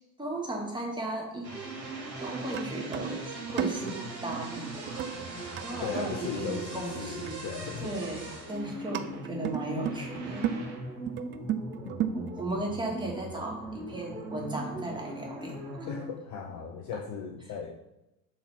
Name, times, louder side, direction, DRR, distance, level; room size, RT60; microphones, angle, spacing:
voice 1, 0.2-1.5 2.2-3.2 3.5-5.1 5.6-7.4 7.8-10.4 12.1-15.6, right 1 dB, 10° right, -2 dB, 2.4 m, -36 dB
sound 1, 1.4-3.0 3.3-3.6 4.9-6.8 7.0-7.1 8.0-11.1, right 3 dB, 65° right, 2.1 m, -51 dB
sound 2, 1.4-16.1, right 2 dB, 90° right, 1.9 m, -40 dB
sound 3, 2.3-7.4 7.7-7.8 8.2-8.6 8.9-10.6 11.1-12.6, right 9 dB, 25° right, 0.4 m, -34 dB
voice 2, 5.8-8.0 11.8-12.3 15.9-17.8, left 6 dB, 35° left, 4 dB, 0.8 m, -38 dB
7.0 x 3.9 x 5.9 m, 0.93 s
figure-of-eight pair, 70°, 49 cm